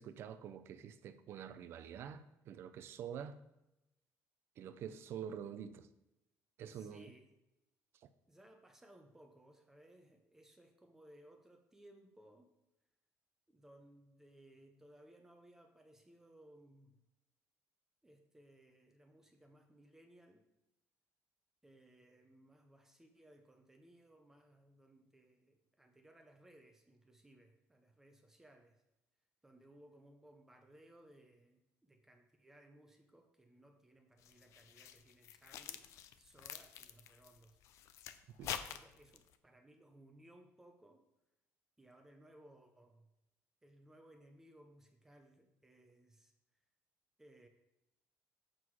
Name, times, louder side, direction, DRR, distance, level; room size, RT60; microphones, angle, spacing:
voice 1, 0.0-3.4 4.6-5.9 6.6-7.1 38.4-38.5, right 8 dB, 45° right, 0.5 m, -47 dB
voice 2, 6.7-7.3 8.3-12.5 13.5-17.0 18.0-20.5 21.6-28.8 29.4-35.9 36.1-37.6 38.5-41.0 41.8-43.1 43.6-46.3 47.2-47.5, right 1 dB, 10° right, 0.6 m, -62 dB
sound 1, 34.2-39.3, left 10 dB, 65° left, 0.5 m, -47 dB
7.5 x 6.2 x 4.7 m
cardioid pair, 180°, 6 cm